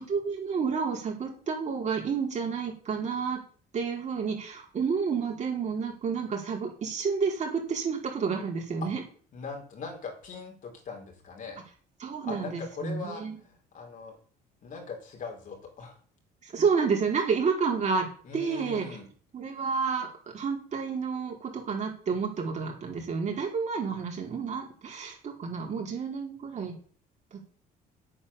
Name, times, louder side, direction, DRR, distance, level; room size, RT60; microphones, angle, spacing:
voice 1, 0.0-3.4 3.7-9.0 12.0-13.3 16.4-18.1 18.3-18.9 19.3-20.1 20.3-26.7 27.3-27.4, right 5 dB, 45° right, 0 dB, 4.7 m, -30 dB
voice 2, 9.3-11.6 12.2-14.2 14.6-16.0 18.2-19.1, left 5 dB, 50° left, 2 dB, 4.6 m, -40 dB
8.9 x 8.6 x 7.3 m, 0.44 s
cardioid pair, 110°, 17 cm